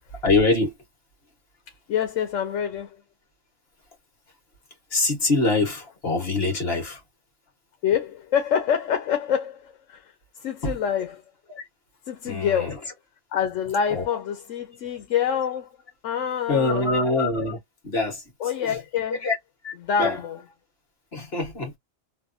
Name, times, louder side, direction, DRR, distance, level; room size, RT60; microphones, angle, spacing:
voice 1, 0.2-0.7 4.9-7.0 10.6-10.8 11.5-11.6 12.3-12.8 13.9-14.2 16.5-18.2 18.6-18.8 19.1-19.4 19.6-20.2 21.1-21.7, left 3 dB, 55° left, 1.6 m, -24 dB
voice 2, 1.9-3.0 7.8-10.1 10.4-11.2 12.1-12.8 13.3-15.7 16.0-17.0 18.4-19.2 19.8-20.4, left 8 dB, 80° left, 1.0 m, -26 dB
3.3 x 2.3 x 2.6 m
omnidirectional pair, 1.3 m